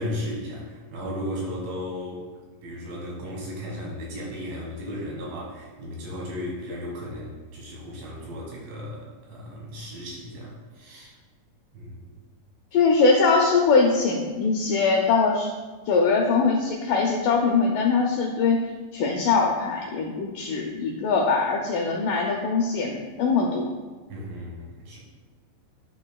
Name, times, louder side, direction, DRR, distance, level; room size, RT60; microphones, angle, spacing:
voice 1, 0.0-2.3 2.6-11.1 11.7-12.1 24.1-25.0, left 1 dB, 75° right, -4 dB, 3.4 m, -35 dB
voice 2, 12.7-15.5 15.9-18.6 18.9-23.7, left 4 dB, 85° left, 0 dB, 1.8 m, -22 dB
10.5 x 5.3 x 2.2 m, 1.3 s
omnidirectional pair, 4.4 m